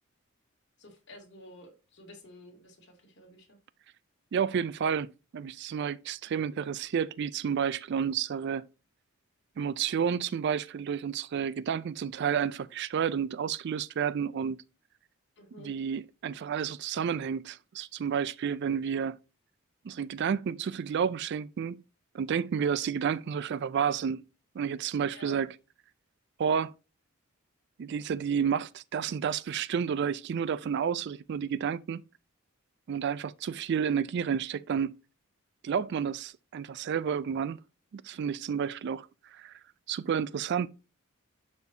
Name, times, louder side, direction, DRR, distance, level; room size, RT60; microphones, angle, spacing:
voice 1, 0.8-3.6 15.4-15.7 25.1-25.4, left 1 dB, 55° left, 2.4 m, -51 dB
voice 2, 4.3-5.1 5.3-8.6 9.6-14.6 15.6-19.2 19.8-21.8 22.1-24.2 24.6-25.5 26.4-26.7 27.8-32.0 32.9-34.9 35.6-37.6 37.9-39.5 39.9-40.7, right 7 dB, 55° right, 0.3 m, -30 dB
11.5 x 4.3 x 2.7 m
head